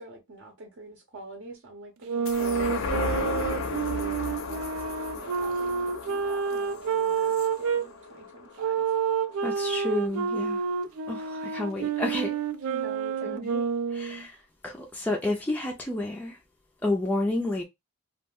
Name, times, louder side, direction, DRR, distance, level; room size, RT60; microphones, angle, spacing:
voice 1, 0.0-3.2 3.8-4.6 5.1-8.8 12.6-13.4, right 2 dB, 60° right, 0.7 m, -45 dB
sound 1, 2.0-7.8 8.6-14.2, right 6 dB, 75° right, 0.4 m, -29 dB
sound 2, 2.3-9.0 9.5-9.6, left 4 dB, 60° left, 0.6 m, -34 dB
voice 2, 9.4-10.6 11.1-12.3 13.3-13.6 13.9-14.3 14.6-16.4 16.8-17.6, left 2 dB, 5° left, 0.3 m, -30 dB
2.3 x 2.1 x 3.4 m
head